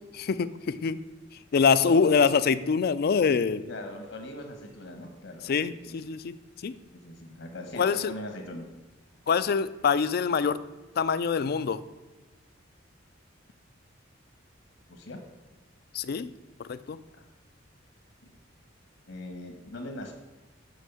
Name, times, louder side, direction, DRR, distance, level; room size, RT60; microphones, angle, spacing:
voice 1, 0.1-1.0 1.5-3.6 5.4-6.4 6.6-6.7 7.7-8.1 9.3-10.6 11.0-11.8 15.9-16.3 16.6-17.0, left 5 dB, 50° left, 14 dB, 0.4 m, -24 dB
voice 2, 3.7-6.0 6.9-8.7 14.9-15.2 18.2-18.3 19.1-20.1, left 1 dB, 80° left, 3 dB, 1.4 m, -40 dB
6.5 x 6.3 x 6.9 m, 1.1 s
head